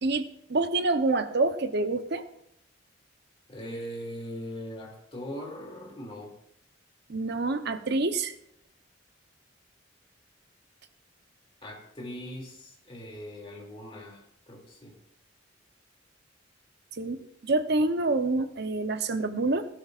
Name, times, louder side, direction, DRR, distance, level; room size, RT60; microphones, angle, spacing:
voice 1, 0.0-2.2 7.1-8.3 17.0-17.2 17.4-19.7, right 2 dB, 60° right, 9 dB, 0.8 m, -27 dB
voice 2, 3.5-6.3 11.6-15.0, equal, 30° left, -1 dB, 2.6 m, -40 dB
17.5 x 11.5 x 2.5 m, 0.75 s
head